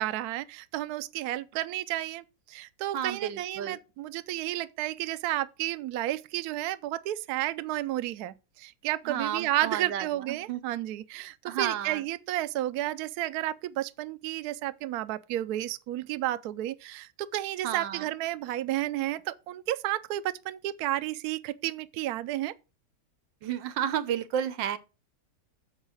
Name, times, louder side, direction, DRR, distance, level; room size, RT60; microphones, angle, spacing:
voice 1, 0.0-22.5, right 14 dB, 70° right, 1.0 m, -32 dB
voice 2, 2.9-3.8 9.0-10.6 11.4-12.1 17.6-18.1 23.4-24.8, right 9 dB, 85° right, 1.5 m, -32 dB
7.2 x 5.5 x 6.2 m
omnidirectional pair, 1.9 m